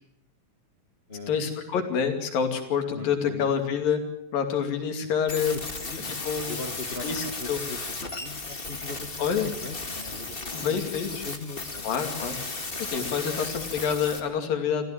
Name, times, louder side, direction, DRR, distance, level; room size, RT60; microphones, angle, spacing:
voice 1, 1.3-4.0 4.3-5.6 6.2-6.5 7.0-7.6 9.2-9.5 10.4-11.2 11.8-12.4 12.9-14.9, left 7 dB, 85° left, 6 dB, 4.3 m, -27 dB
voice 2, 2.9-3.5 5.5-6.2 6.5-10.8 11.2-11.9, left 3 dB, 60° left, 6 dB, 0.6 m, -40 dB
sound 1, 5.3-14.2, left 3 dB, 25° left, 1.4 m, -35 dB
25.5 x 15.5 x 8.9 m, 0.77 s
omnidirectional pair, 3.9 m